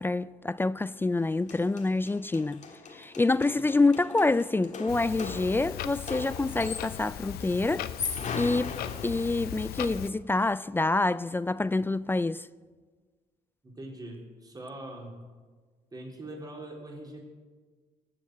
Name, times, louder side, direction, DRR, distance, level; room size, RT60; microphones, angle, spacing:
voice 1, 0.0-2.6 2.9-7.9 8.4-8.8 9.0-12.5, left 3 dB, 15° left, 0.3 m, -27 dB
sound 1, 1.2-1.3 1.5-7.1 7.8-9.6, left 5 dB, 50° left, 1.7 m, -39 dB
Clock, 4.9-10.1, left 11 dB, 80° left, 0.7 m, -38 dB
voice 2, 13.6-15.3 15.9-17.2, right 1 dB, 25° right, 3.7 m, -42 dB
19.5 x 7.1 x 7.7 m
cardioid pair, 85°, 16 cm